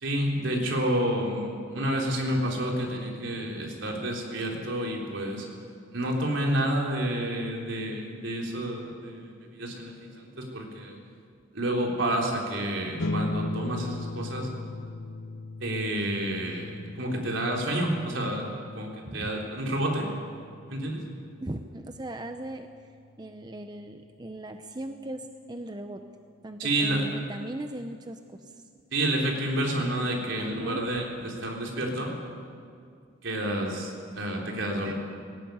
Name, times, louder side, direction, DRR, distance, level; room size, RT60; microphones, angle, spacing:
voice 1, 0.0-5.5 5.9-11.0 11.5-14.5 15.6-18.5 18.7-20.1 20.7-21.0 26.6-27.1 28.9-32.1 33.2-34.9, right 1 dB, 70° right, 0 dB, 3.9 m, -29 dB
sound 1, 13.0-23.8, left 2 dB, 70° left, 0.8 m, -38 dB
voice 2, 21.4-22.7 23.2-26.0 26.4-28.6 30.3-30.8, right 1 dB, 20° right, 6 dB, 0.7 m, -38 dB
18.5 x 18.0 x 9.5 m, 2.3 s
head